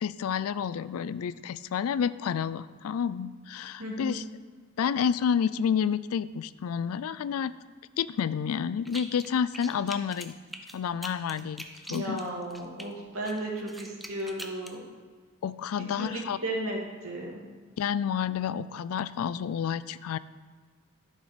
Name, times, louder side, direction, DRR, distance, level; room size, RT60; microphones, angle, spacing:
voice 1, 0.0-4.2 4.8-7.5 8.0-10.3 10.7-12.2 15.4-16.4 17.8-20.2, left 7 dB, 85° left, 16 dB, 0.3 m, -29 dB
voice 2, 3.8-4.2 11.9-14.8 16.0-17.4, right 1 dB, 80° right, -2 dB, 2.2 m, -34 dB
sound 1, 8.9-9.3 9.5-12.9 13.3-14.8, equal, ahead, 0.5 m, -42 dB
11.5 x 6.4 x 5.0 m, 1.5 s
head